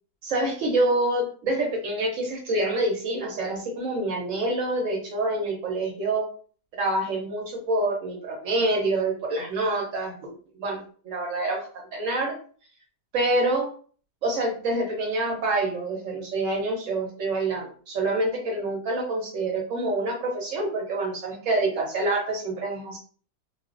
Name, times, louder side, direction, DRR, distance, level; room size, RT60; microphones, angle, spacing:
voice 1, 0.2-6.2 6.8-11.6 11.9-12.3 13.1-13.7 14.2-23.0, right 2 dB, 65° right, 0 dB, 0.9 m, -26 dB
2.4 x 2.3 x 2.4 m, 0.44 s
omnidirectional pair, 1.6 m